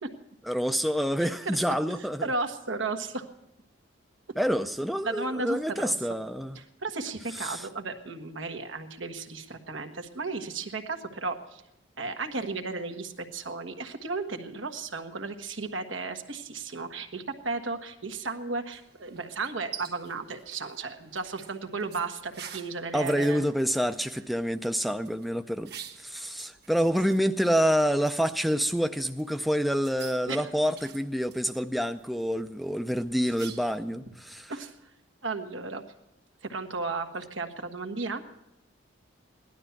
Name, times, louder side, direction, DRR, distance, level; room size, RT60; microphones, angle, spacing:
voice 1, 0.5-2.3 4.4-6.6 7.4-7.7 22.9-25.7 26.0-34.5, equal, ahead, 7 dB, 0.4 m, -27 dB
voice 2, 1.2-1.6 2.2-3.3 5.0-5.9 6.5-11.6 12.0-23.4 30.3-30.4 34.5-34.7 35.2-35.8 36.4-38.2, right 3 dB, 90° right, 5 dB, 1.5 m, -34 dB
sound 1, 18.7-33.9, right 8 dB, 55° right, 1.2 m, -49 dB
17.0 x 12.0 x 5.8 m, 0.86 s
head